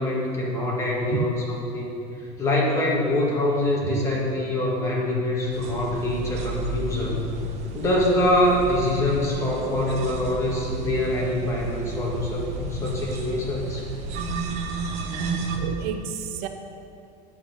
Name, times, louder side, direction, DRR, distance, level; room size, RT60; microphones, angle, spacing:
voice 1, 0.0-1.9 2.4-7.3 7.7-13.8, left 1 dB, 15° left, -4 dB, 1.9 m, -24 dB
sound 1, 5.5-15.6, right 3 dB, 35° right, 1.0 m, -33 dB
voice 2, 15.5-16.5, right 8 dB, 65° right, 7 dB, 0.7 m, -30 dB
9.7 x 5.7 x 8.0 m, 2.6 s
cardioid pair, 170°, 20 cm